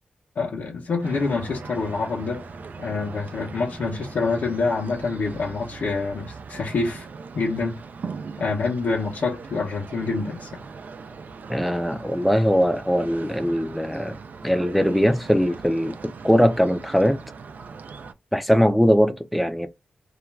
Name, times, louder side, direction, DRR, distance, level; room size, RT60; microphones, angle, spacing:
voice 1, 0.4-2.4 2.8-7.1 7.3-7.8 8.4-10.6, left 4 dB, 90° left, 0.6 m, -26 dB
sound 1, 1.0-18.1, right 5 dB, 70° right, 0.3 m, -40 dB
Bowed string instrument, 1.1-5.1, right 2 dB, 40° right, 0.9 m, -46 dB
voice 2, 11.5-14.2 14.4-17.2 18.3-19.7, equal, ahead, 0.4 m, -21 dB
2.4 x 2.2 x 3.1 m
wide cardioid pair, 95°, 3 cm